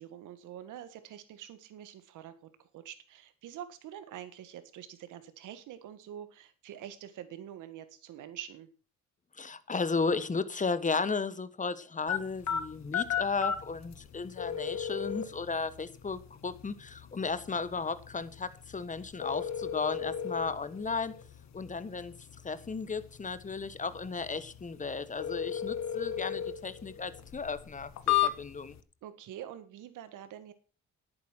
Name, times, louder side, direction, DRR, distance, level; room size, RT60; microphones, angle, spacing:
voice 1, 0.0-8.7 28.1-28.2 29.0-30.5, right 10 dB, 85° right, 1.8 m, -46 dB
voice 2, 9.4-21.1 21.5-22.1 22.4-28.8, left 4 dB, 25° left, 1.3 m, -34 dB
sound 1, 12.1-28.8, left 9 dB, 65° left, 1.6 m, -36 dB
11.0 x 8.9 x 6.1 m
cardioid pair, 90°, 30 cm